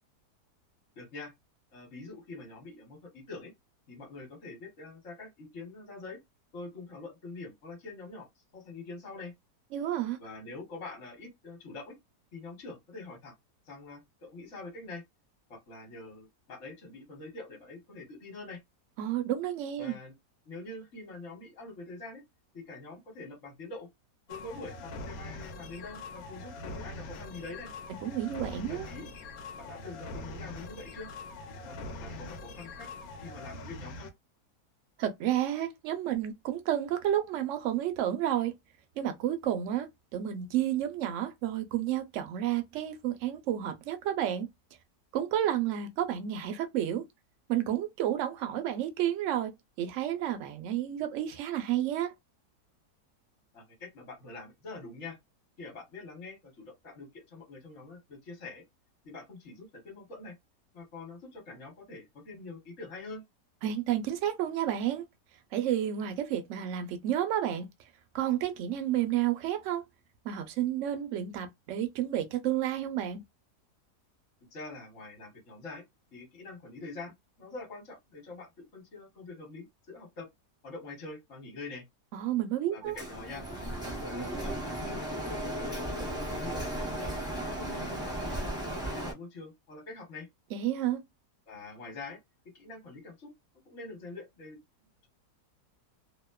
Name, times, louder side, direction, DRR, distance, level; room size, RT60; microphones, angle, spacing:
voice 1, 1.0-1.3 1.7-3.5 3.9-6.2 6.5-8.3 8.5-9.3 10.2-11.9 12.3-13.3 13.7-15.0 15.5-18.6 19.8-20.1 20.4-22.2 22.5-23.9 24.3-27.7 28.7-29.1 29.5-31.1 31.6-32.9 33.2-34.1 53.5-55.2 55.6-58.6 59.0-60.3 60.7-63.2 74.5-75.8 76.1-80.3 80.6-81.8 82.7-83.4 84.0-87.2 87.6-90.3 91.5-92.2 92.5-93.3 93.7-94.6, left 3 dB, 50° left, 1.1 m, -45 dB
voice 2, 9.7-10.2 19.0-19.9 28.0-28.9 35.0-38.5 39.0-39.9 40.1-44.5 45.1-47.0 47.5-52.1 63.6-65.0 65.5-67.7 68.1-69.8 70.2-73.2 82.1-83.0 90.5-91.0, right 11 dB, 75° right, 0.7 m, -31 dB
sound 1, 24.3-34.1, left 2 dB, 70° left, 1.0 m, -43 dB
Printer, 83.0-89.1, right 1 dB, 5° right, 0.3 m, -35 dB
2.8 x 2.1 x 2.2 m
omnidirectional pair, 1.8 m